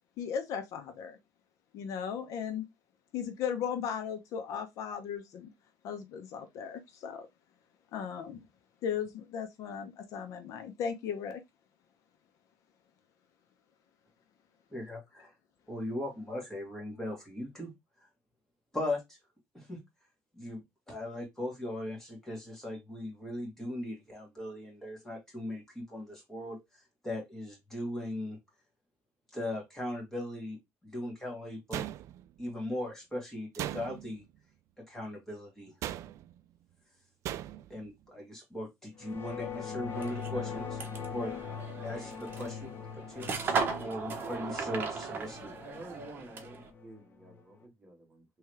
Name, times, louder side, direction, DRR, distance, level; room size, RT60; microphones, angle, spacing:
voice 1, 0.2-1.2 1.7-2.6 3.1-5.5 5.8-7.3 7.9-8.4 8.8-11.4, left 7 dB, 65° left, 0.9 m, -36 dB
voice 2, 14.7-15.3 15.7-17.7 18.7-19.2 19.5-19.8 20.3-26.6 27.0-28.4 29.3-31.9 32.4-34.2 34.8-35.7 37.7-40.8 41.1-41.3 41.8-43.5 43.8-45.6, left 1 dB, 5° left, 2.0 m, -38 dB
sound 1, 31.7-32.4 33.5-34.2 35.8-36.4 37.2-37.8, right 12 dB, 60° right, 0.3 m, -38 dB
sound 2, 39.0-47.6, left 7 dB, 40° left, 0.8 m, -42 dB
sound 3, 39.9-46.7, right 5 dB, 35° right, 1.0 m, -37 dB
voice 3, 45.6-48.2, right 2 dB, 20° right, 1.5 m, -50 dB
3.6 x 3.1 x 3.2 m
cardioid pair, 145°, 6 cm